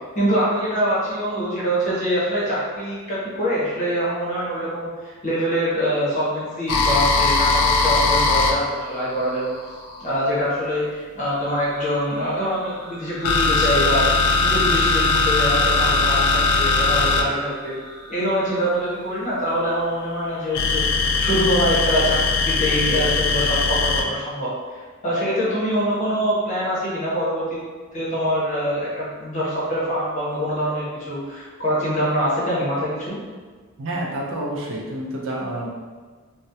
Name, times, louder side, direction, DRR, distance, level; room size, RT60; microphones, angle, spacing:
voice 1, 0.1-9.5 10.0-14.1 14.4-17.7 18.1-22.2 22.5-27.6 27.9-33.2, equal, 35° left, -7 dB, 0.7 m, -24 dB
sound 1, 6.7-10.1 11.2-18.6 20.5-24.0, left 3 dB, 90° left, 0.3 m, -20 dB
voice 2, 33.8-35.7, right 1 dB, 60° right, -3 dB, 0.4 m, -28 dB
2.2 x 2.1 x 2.7 m, 1.4 s
head